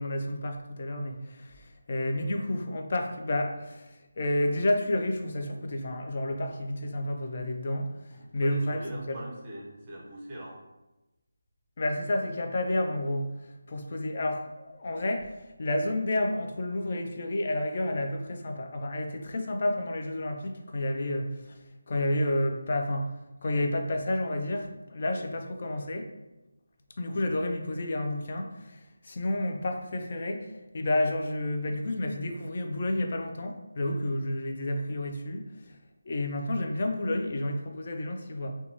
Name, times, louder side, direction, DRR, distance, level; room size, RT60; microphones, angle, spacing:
voice 1, 0.0-9.2 11.8-26.1 27.0-35.8 36.1-38.5, left 1 dB, 40° left, 3 dB, 0.3 m, -30 dB
voice 2, 8.1-10.6, right 1 dB, 20° right, -4 dB, 0.6 m, -42 dB
2.9 x 2.2 x 2.6 m, 1.0 s
figure-of-eight pair, 170°, 0 cm